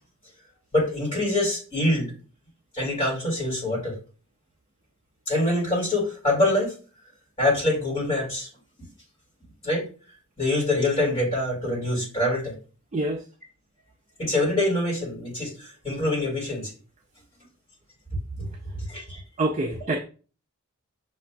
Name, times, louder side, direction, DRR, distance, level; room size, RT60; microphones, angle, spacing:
voice 1, 0.7-2.1 2.8-3.9 5.3-6.7 7.4-8.5 9.6-9.9 10.4-12.5 14.2-16.7 18.3-18.4 18.9-19.2, left 1 dB, 25° left, 2.0 m, -25 dB
voice 2, 19.4-20.0, right 2 dB, 30° right, 0.4 m, -26 dB
6.5 x 2.4 x 2.2 m
head